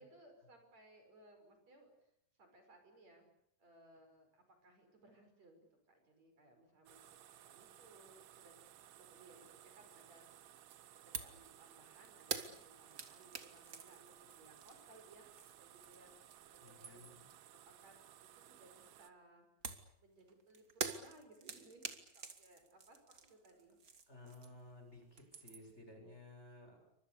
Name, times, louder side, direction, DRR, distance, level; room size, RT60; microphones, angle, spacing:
voice 1, 0.0-2.1 2.4-3.3 3.6-8.5 8.8-17.1 17.5-17.9 18.2-19.5 20.0-23.8, right 2 dB, 50° right, 5 dB, 6.9 m, -63 dB
sound 1, 6.9-19.1, right 11 dB, 85° right, 3.1 m, -60 dB
sound 2, 11.1-11.4 11.7-16.2 16.5-17.3 19.6-24.7 25.0-25.8, right 5 dB, 35° right, 1.8 m, -47 dB
voice 2, 16.6-17.2 24.1-26.8, left 2 dB, 20° left, 4 dB, 7.3 m, -56 dB
29.5 x 25.0 x 6.9 m, 0.74 s
omnidirectional pair, 3.9 m